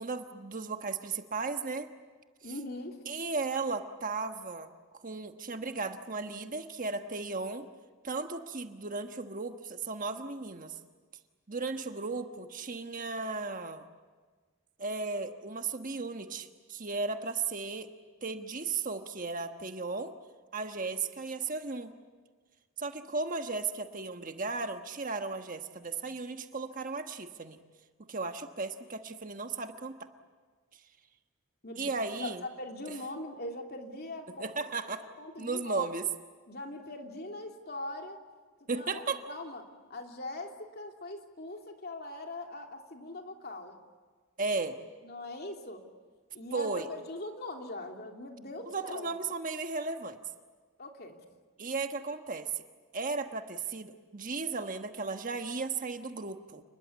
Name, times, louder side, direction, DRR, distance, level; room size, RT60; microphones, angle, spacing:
voice 1, 0.0-1.9 3.1-7.7 8.0-10.8 11.5-13.9 14.8-17.9 18.2-20.1 20.5-21.9 22.8-27.6 28.1-30.1 31.8-32.5 34.4-35.0 35.4-36.1 38.7-39.2 44.4-44.8 46.5-46.9 48.7-50.2 51.6-52.6 52.9-56.6, right 4 dB, 40° right, 7 dB, 1.3 m, -35 dB
voice 2, 2.4-3.0 31.6-31.9 32.2-34.5 35.0-35.9 36.5-38.2 38.6-39.6 39.9-43.7 45.0-45.8 46.3-49.1 50.8-51.2, left 2 dB, 45° left, 3 dB, 2.9 m, -41 dB
29.0 x 21.0 x 8.5 m, 1.4 s
head